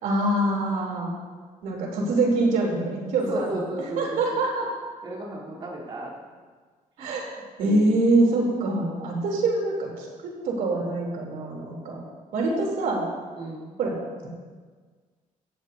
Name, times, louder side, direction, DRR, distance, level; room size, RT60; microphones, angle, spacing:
voice 1, 0.0-1.1 1.6-3.5 4.0-4.7 7.0-7.2 7.6-12.0 12.3-13.0 13.8-13.9, right 2 dB, 90° right, -2 dB, 3.2 m, -24 dB
voice 2, 3.3-4.4 5.0-6.1 7.0-7.1 13.4-13.8, right 1 dB, 35° right, -7 dB, 3.5 m, -33 dB
17.0 x 14.5 x 2.7 m, 1.5 s
cardioid pair, 170°, 14 cm